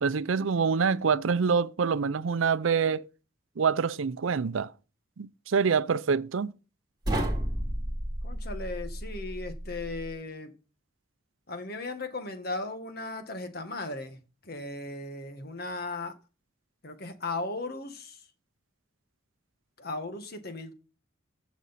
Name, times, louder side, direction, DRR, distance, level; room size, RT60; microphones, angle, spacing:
voice 1, 0.0-3.1 3.6-4.7 5.2-6.5, right 5 dB, 80° right, 0.5 m, -26 dB
sound 1, 7.0-10.1, right 1 dB, 20° right, 3.0 m, -32 dB
voice 2, 8.2-10.5 11.5-16.1 16.8-18.3 19.8-20.7, left 2 dB, 50° left, 1.5 m, -37 dB
15.0 x 6.1 x 4.2 m
head